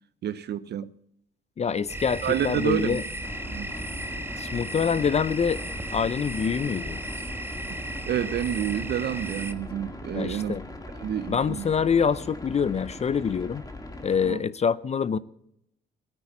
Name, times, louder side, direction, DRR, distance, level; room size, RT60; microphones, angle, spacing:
voice 1, 0.2-0.9 2.2-3.0 3.5-3.7 8.1-10.6 11.0-11.7 14.2-14.4, right 10 dB, 55° right, 0.5 m, -29 dB
voice 2, 1.6-3.0 4.4-5.6 5.9-7.0 10.1-10.6 11.3-13.6 14.0-15.2, left 6 dB, 35° left, 0.5 m, -25 dB
sound 1, 1.9-9.5, right 1 dB, 10° right, 1.2 m, -35 dB
sound 2, 3.2-14.3, left 2 dB, 20° left, 1.9 m, -40 dB
16.0 x 9.1 x 7.1 m
cardioid pair, 90°, 20 cm